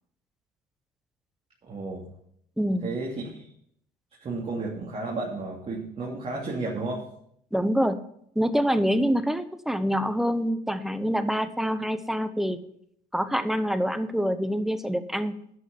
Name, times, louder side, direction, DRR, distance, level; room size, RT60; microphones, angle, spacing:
voice 1, 1.7-2.1 2.8-3.5 4.2-7.0, right 3 dB, 35° right, -4 dB, 2.9 m, -32 dB
voice 2, 2.6-3.0 7.5-8.0 8.4-12.6 13.1-15.3, equal, ahead, 11 dB, 0.8 m, -26 dB
11.0 x 6.3 x 7.9 m, 0.70 s
cardioid pair, 110°, 17 cm